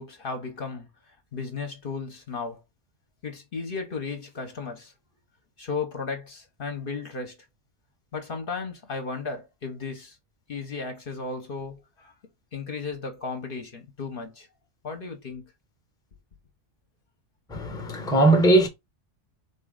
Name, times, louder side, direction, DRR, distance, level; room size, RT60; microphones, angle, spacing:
voice 1, 0.0-2.6 3.2-4.9 5.6-7.4 8.1-10.2 10.5-12.1 12.5-14.5 14.8-15.5, left 4 dB, 55° left, 0.9 m, -35 dB
voice 2, 17.5-18.7, right 2 dB, 5° left, 0.7 m, -19 dB
4.1 x 3.1 x 3.7 m
omnidirectional pair, 1.2 m